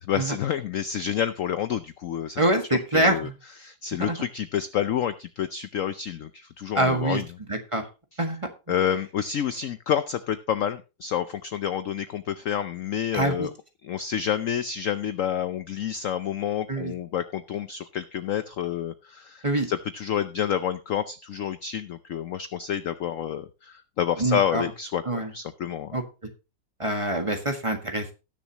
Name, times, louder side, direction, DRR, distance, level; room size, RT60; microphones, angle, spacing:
voice 1, 0.0-2.4 2.9-3.3 3.6-7.2 8.7-13.5 13.8-25.9, left 9 dB, 65° left, 12 dB, 0.8 m, -29 dB
voice 2, 2.4-3.4 3.9-4.2 6.7-7.2 7.5-7.9 8.2-8.4 13.1-13.5 16.7-16.9 19.4-19.7 24.2-24.7 25.0-25.3 25.9-26.0 26.8-28.1, right 1 dB, 20° right, 4 dB, 1.5 m, -25 dB
19.5 x 6.8 x 2.9 m, 0.29 s
omnidirectional pair, 1.9 m